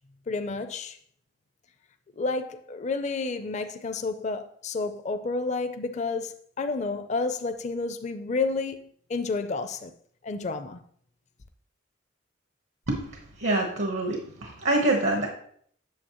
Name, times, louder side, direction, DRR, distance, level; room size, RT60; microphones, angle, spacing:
voice 1, 0.3-1.0 2.2-9.9 10.2-10.8, left 3 dB, 40° left, 0.5 m, -30 dB
voice 2, 13.4-15.3, right 2 dB, 75° right, 1.1 m, -25 dB
8.5 x 6.8 x 3.0 m
head